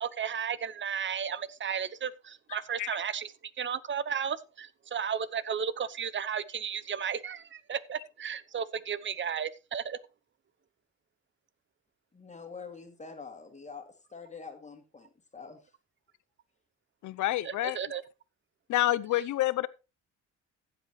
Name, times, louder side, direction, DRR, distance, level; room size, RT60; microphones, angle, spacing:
voice 1, 0.0-3.3 3.6-10.0 17.4-18.0, right 7 dB, 40° right, 0.8 m, -34 dB
voice 2, 12.1-15.7, left 5 dB, 25° left, 2.5 m, -46 dB
voice 3, 17.0-17.8 18.7-19.7, left 15 dB, 75° left, 0.7 m, -28 dB
15.0 x 8.0 x 3.2 m
cardioid pair, 90°, 30 cm